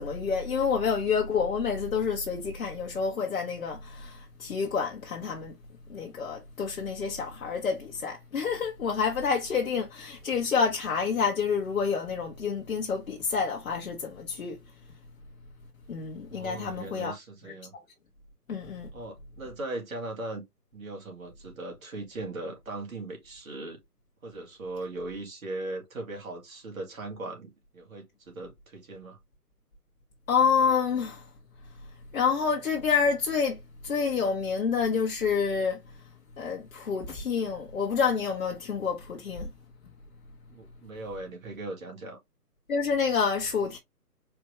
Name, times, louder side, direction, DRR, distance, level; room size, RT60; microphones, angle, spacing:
voice 1, 0.0-5.5 5.9-14.6 15.9-17.1 17.4-17.8 18.5-18.9 30.3-31.3 32.1-36.1 36.4-39.5 42.7-43.8, left 6 dB, 60° left, 1.0 m, -28 dB
voice 2, 16.2-17.7 18.9-20.4 20.7-23.8 24.2-29.2 40.5-42.2, right 2 dB, 55° right, 1.9 m, -39 dB
4.5 x 2.6 x 3.3 m
figure-of-eight pair, 145°, 48 cm